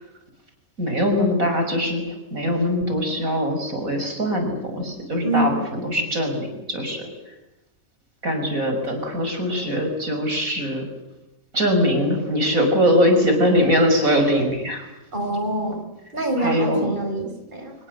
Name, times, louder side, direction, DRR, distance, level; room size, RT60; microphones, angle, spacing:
voice 1, 0.8-7.3 8.2-10.9 11.5-14.9 16.4-17.0, equal, 85° right, 5 dB, 6.4 m, -22 dB
voice 2, 5.2-5.6 15.1-15.8 16.1-17.7, right 1 dB, 35° right, 4 dB, 5.1 m, -25 dB
26.0 x 21.5 x 8.0 m, 0.97 s
omnidirectional pair, 1.4 m